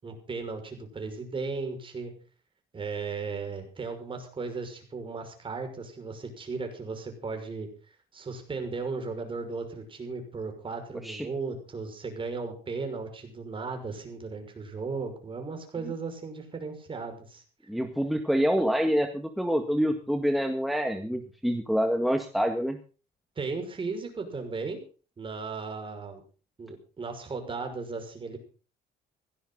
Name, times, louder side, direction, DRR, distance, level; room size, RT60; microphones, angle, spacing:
voice 1, 0.0-2.1 2.7-7.7 8.1-17.4 23.4-24.8 25.2-26.2 26.6-28.4, right 4 dB, 30° right, 5 dB, 6.0 m, -36 dB
voice 2, 17.7-22.8, equal, ahead, 5 dB, 1.9 m, -26 dB
17.0 x 16.0 x 4.1 m, 0.37 s
cardioid pair, 110°, 17 cm